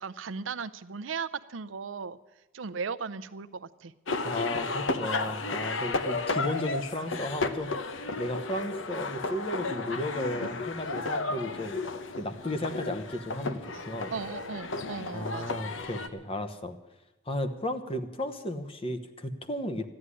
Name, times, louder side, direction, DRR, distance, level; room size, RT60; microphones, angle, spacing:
voice 1, 0.0-2.2 2.5-3.9 13.7-13.8 14.1-15.6, right 5 dB, 90° right, 12 dB, 0.6 m, -37 dB
sound 1, 4.1-16.1, left 3 dB, 85° left, 0.9 m, -33 dB
voice 2, 4.2-7.8 8.2-11.8 12.2-13.6 13.9-14.1 15.1-16.7 17.3-19.8, left 1 dB, 30° left, 7 dB, 1.1 m, -34 dB
13.5 x 9.7 x 9.9 m, 1.0 s
head